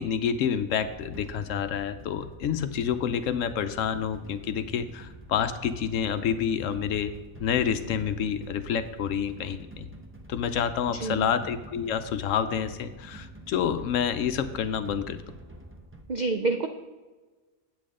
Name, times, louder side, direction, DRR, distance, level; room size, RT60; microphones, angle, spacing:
voice 1, 0.0-7.1 7.4-9.9 10.3-15.2, left 8 dB, 70° left, 10 dB, 0.9 m, -28 dB
sound 1, 0.8-16.0, right 1 dB, 15° right, 0.4 m, -47 dB
voice 2, 10.9-11.3 16.1-16.7, right 3 dB, 80° right, 6 dB, 0.4 m, -28 dB
8.5 x 8.4 x 3.7 m, 1.3 s
omnidirectional pair, 1.5 m